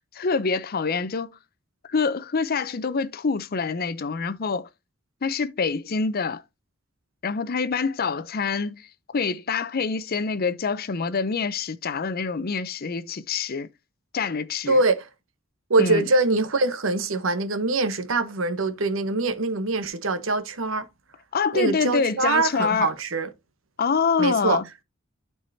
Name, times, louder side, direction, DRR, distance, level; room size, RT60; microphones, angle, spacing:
voice 1, 0.1-1.4 1.9-4.7 5.2-6.4 7.2-8.9 9.1-13.7 14.1-14.8 15.8-16.0 21.3-22.9 23.8-24.6, left 5 dB, 50° left, 0.6 m, -26 dB
voice 2, 14.7-15.1 15.7-20.9 21.5-23.3 24.2-24.6, right 3 dB, 75° right, 1.0 m, -23 dB
12.0 x 4.7 x 2.7 m
head